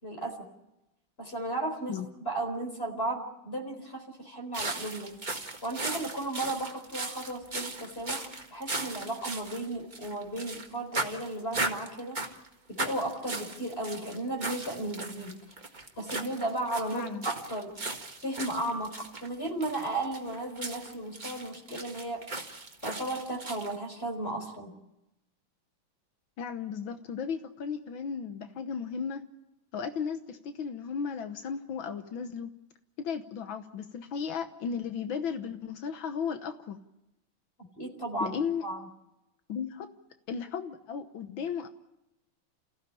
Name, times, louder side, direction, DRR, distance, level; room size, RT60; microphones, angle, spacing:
voice 1, 0.0-0.5 1.2-1.9 2.2-5.2 5.6-12.2 12.7-15.4 16.0-17.7 18.2-18.9 19.2-22.2 22.8-24.7 37.6-38.8, right 2 dB, 30° left, 4 dB, 4.6 m, -35 dB
sound 1, 4.5-10.7 10.9-12.5 12.8-23.8, right 2 dB, 25° right, 1.8 m, -37 dB
voice 2, 16.9-17.3 26.4-29.2 29.7-32.5 33.0-36.8 38.2-38.7 39.5-39.9 40.3-41.7, left 6 dB, 80° left, 8 dB, 1.9 m, -35 dB
29.5 x 15.5 x 8.7 m, 0.94 s
omnidirectional pair, 2.1 m